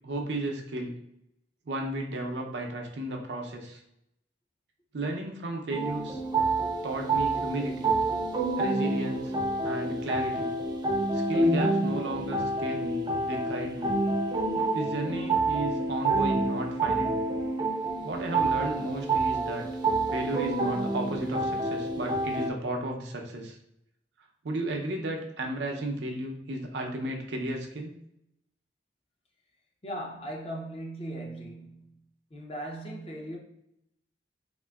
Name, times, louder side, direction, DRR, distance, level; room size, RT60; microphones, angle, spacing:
voice 1, 0.0-1.0 1.7-3.8 4.9-6.2 6.8-7.9 8.6-9.3 9.6-10.5 11.1-14.0 14.7-17.1 18.0-19.7 20.1-23.6 24.4-27.9, right 1 dB, 75° right, 0.6 m, -34 dB
sound 1, 5.7-22.5, right 2 dB, 25° right, 0.4 m, -28 dB
voice 2, 29.8-32.0 32.3-33.4, right 1 dB, 35° left, 0.6 m, -38 dB
3.7 x 2.5 x 2.3 m
head